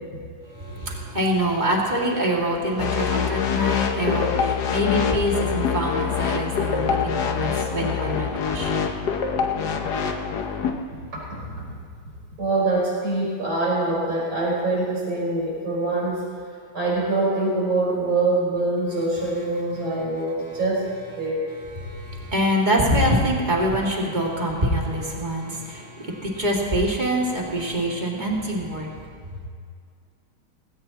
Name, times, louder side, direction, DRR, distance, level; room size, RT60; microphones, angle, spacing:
voice 1, 0.5-8.8 21.7-29.0 29.3-29.4, equal, 20° right, -2 dB, 2.3 m, -25 dB
sound 1, 2.8-10.7, left 7 dB, 60° left, 1.4 m, -25 dB
voice 2, 11.3-11.7 12.4-16.2 16.7-20.9 21.2-21.4, right 2 dB, 75° right, -5 dB, 5.5 m, -24 dB
18.5 x 17.5 x 3.0 m, 2.2 s
omnidirectional pair, 2.2 m